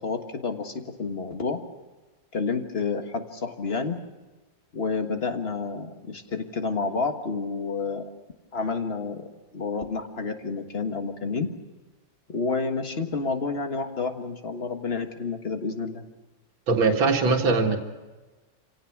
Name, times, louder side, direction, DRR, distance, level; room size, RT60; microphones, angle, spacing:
voice 1, 0.0-1.6 2.3-4.0 4.7-8.0 8.5-9.2 9.5-11.5 12.3-16.0, left 4 dB, 35° left, 6 dB, 1.6 m, -29 dB
voice 2, 16.7-17.8, right 4 dB, 90° right, 2 dB, 2.5 m, -21 dB
27.5 x 17.0 x 6.0 m, 1.2 s
omnidirectional pair, 2.1 m